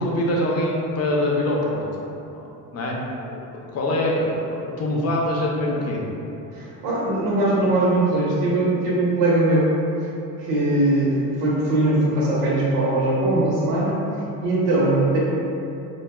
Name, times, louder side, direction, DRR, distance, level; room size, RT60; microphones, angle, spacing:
voice 1, 0.0-1.8 2.3-2.4 2.7-3.0 3.3-3.4 3.7-6.0, left 1 dB, 40° left, -2 dB, 0.6 m, -23 dB
voice 2, 6.5-9.7 10.4-14.0 14.4-15.2, right 2 dB, 80° right, -5 dB, 1.0 m, -20 dB
4.3 x 2.2 x 2.2 m, 2.8 s
cardioid pair, 125°, 37 cm